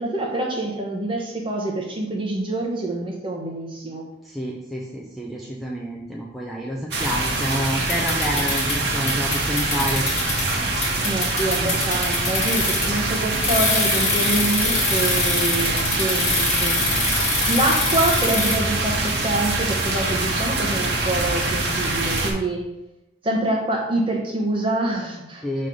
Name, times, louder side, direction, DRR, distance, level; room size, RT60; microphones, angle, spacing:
voice 1, 0.0-4.0 11.0-16.9 17.5-22.7 23.2-25.4, right 2 dB, 30° right, -1 dB, 1.1 m, -26 dB
voice 2, 4.2-10.0 25.4-25.7, equal, ahead, -3 dB, 0.5 m, -28 dB
sound 1, 6.9-22.3, right 2 dB, 60° right, 1.2 m, -24 dB
sound 2, 7.9-8.8 9.1-10.4 10.8-13.0 13.4-18.6, left 3 dB, 35° left, 1.7 m, -24 dB
6.3 x 3.3 x 5.3 m, 0.92 s
head